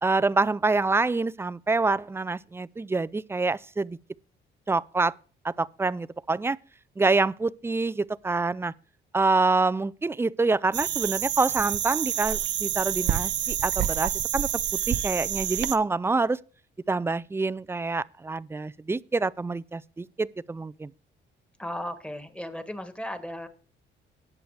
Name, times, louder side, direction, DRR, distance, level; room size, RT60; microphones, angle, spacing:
voice 1, 0.0-4.0 4.7-5.1 5.4-6.6 7.0-8.7 9.1-14.5 14.9-16.4 16.9-20.9, right 3 dB, 10° right, 0.4 m, -26 dB
sound 1, 10.7-15.8, right 11 dB, 65° right, 0.7 m, -28 dB
voice 2, 21.6-23.5, equal, 5° left, 1.7 m, -35 dB
19.0 x 6.8 x 3.3 m
cardioid pair, 90°, 20 cm